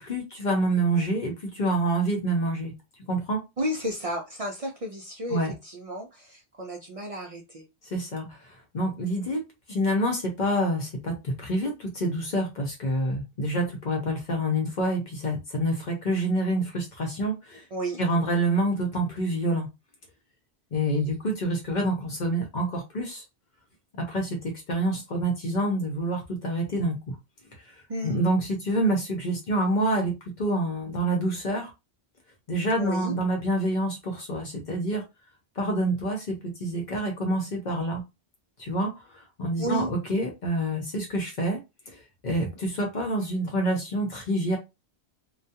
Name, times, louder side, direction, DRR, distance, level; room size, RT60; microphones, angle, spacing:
voice 1, 0.0-2.7 3.1-3.4 5.3-5.5 7.8-8.4 8.7-9.4 9.7-17.6 18.0-19.7 20.7-23.2 24.0-27.2 28.0-31.7 32.5-35.0 35.6-38.0 38.6-41.6 41.9-44.6, right 1 dB, 50° left, 0.7 m, -27 dB
voice 2, 3.6-7.7 17.7-18.0 27.9-28.1 32.8-33.2 39.6-39.9, equal, 55° right, 0.4 m, -32 dB
2.3 x 2.2 x 2.7 m
omnidirectional pair, 1.1 m